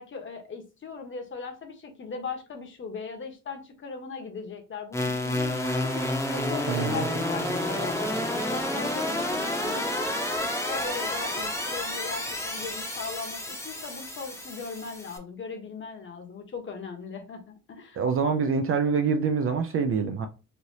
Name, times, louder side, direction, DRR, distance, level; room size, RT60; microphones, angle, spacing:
voice 1, 0.0-10.1 10.4-18.0, left 4 dB, 40° left, 1.0 m, -39 dB
sound 1, 4.9-15.2, left 1 dB, 10° left, 0.8 m, -30 dB
voice 2, 6.7-7.0 18.0-20.3, right 5 dB, 45° right, 0.4 m, -25 dB
3.2 x 2.6 x 2.7 m
cardioid pair, 90°, 30 cm